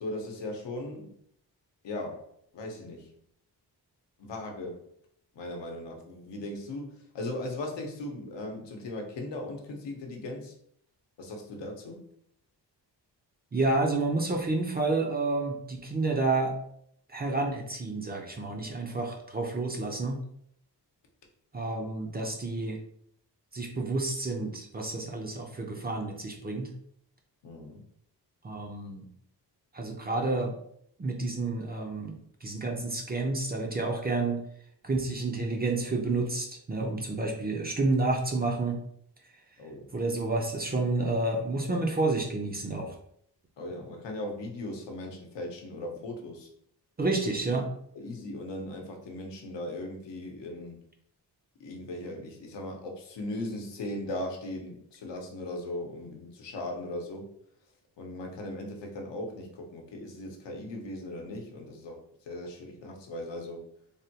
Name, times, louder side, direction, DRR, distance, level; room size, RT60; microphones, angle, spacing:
voice 1, 0.0-1.1 1.8-2.2 2.5-3.1 4.2-4.8 5.4-10.5 11.2-12.0 27.4-27.8 39.6-39.9 43.6-46.5 47.9-50.8 51.6-57.3 58.0-62.0 62.3-63.7, left 1 dB, 85° left, 2 dB, 0.8 m, -38 dB
voice 2, 13.5-16.6 17.1-20.2 21.5-22.8 23.5-26.7 28.4-29.0 29.7-30.5 31.0-34.4 34.8-38.8 39.9-42.9 47.0-47.7, right 3 dB, 25° right, 2 dB, 0.4 m, -30 dB
3.4 x 2.2 x 2.7 m, 0.68 s
wide cardioid pair, 135°, 42 cm